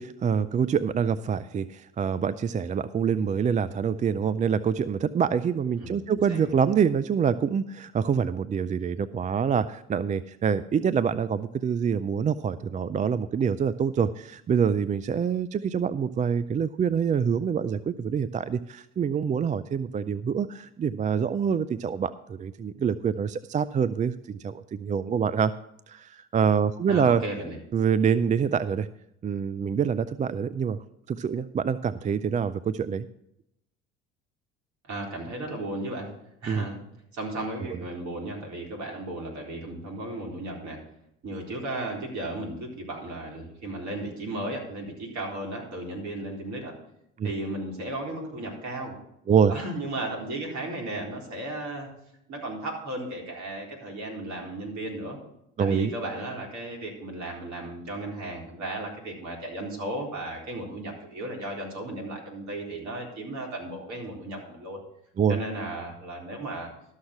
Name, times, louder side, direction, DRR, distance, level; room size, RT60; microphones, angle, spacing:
voice 1, 0.0-25.5 25.9-27.2 27.7-28.9 29.2-30.8 31.1-33.1 36.5-36.7 37.7-37.8 47.2-47.3 49.3-49.5 55.6-55.9 65.2-65.4, right 7 dB, 20° right, 15 dB, 0.4 m, -26 dB
voice 2, 5.8-6.5 26.9-27.6 34.8-36.1 36.4-36.8 37.1-40.8 41.2-46.7 47.2-48.9 49.5-51.9 52.3-55.2 55.6-64.8 65.3-66.7, right 1 dB, 50° right, 0 dB, 4.1 m, -35 dB
13.0 x 6.5 x 5.9 m, 0.78 s
hypercardioid pair, 65°, 36 cm